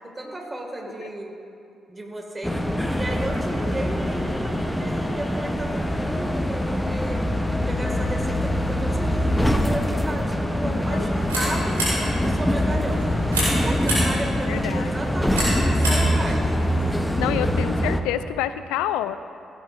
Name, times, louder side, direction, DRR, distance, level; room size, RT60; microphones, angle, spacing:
voice 1, 0.2-1.3 1.9-2.6 2.9-7.2 7.7-11.8 12.2-16.6 17.2-17.4, right 1 dB, 25° right, 1 dB, 2.1 m, -33 dB
sound 1, 2.4-18.0, equal, 5° left, 0.8 m, -24 dB
voice 2, 10.6-11.1 14.5-14.9 17.2-19.2, left 12 dB, 75° left, 13 dB, 0.3 m, -28 dB
sound 2, 10.8-17.0, right 1 dB, 90° right, 2.6 m, -30 dB
15.5 x 10.0 x 2.6 m, 2.6 s
hypercardioid pair, 40°, 0 cm